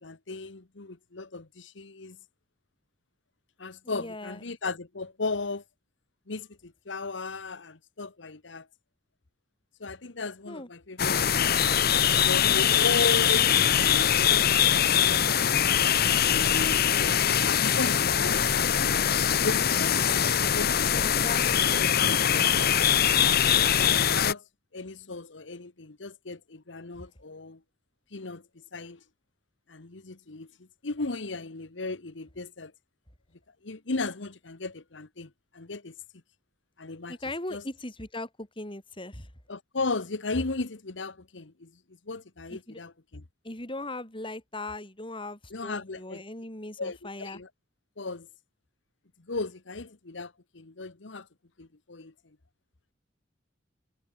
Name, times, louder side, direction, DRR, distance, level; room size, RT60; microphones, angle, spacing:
voice 1, 0.0-2.2 3.6-5.6 6.3-8.7 9.8-13.5 14.1-15.0 17.4-19.0 19.4-19.6 20.4-20.8 21.5-22.4 23.4-24.4 24.7-27.6 28.1-29.0 29.7-32.7 33.6-35.9 36.8-37.1 37.5-37.6 39.5-41.7 42.1-43.2 45.5-46.2 46.8-47.5 48.0-48.3 49.3-51.3 51.6-52.1, left 3 dB, 85° left, 1.3 m, -36 dB
voice 2, 3.8-4.4 10.5-10.7 20.9-21.9 27.0-27.1 37.1-39.3 42.5-42.8 43.4-47.4, left 2 dB, 30° left, 5.9 m, -39 dB
sound 1, 11.0-24.3, left 9 dB, 55° left, 1.0 m, -23 dB
head